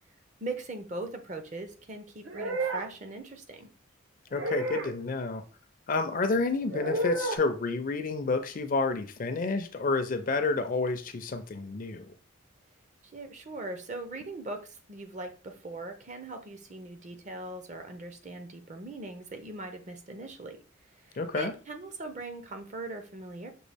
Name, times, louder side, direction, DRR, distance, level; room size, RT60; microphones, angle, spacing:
voice 1, 0.4-3.7 13.0-20.6 20.9-23.5, right 2 dB, 35° right, 6 dB, 0.5 m, -40 dB
sound 1, 2.3-2.9 4.3-4.9 6.7-7.4, right 2 dB, 80° right, 0.9 m, -31 dB
voice 2, 4.3-5.4 5.9-12.2 21.2-21.5, left 3 dB, 40° left, 8 dB, 0.4 m, -29 dB
6.0 x 2.3 x 3.4 m, 0.37 s
head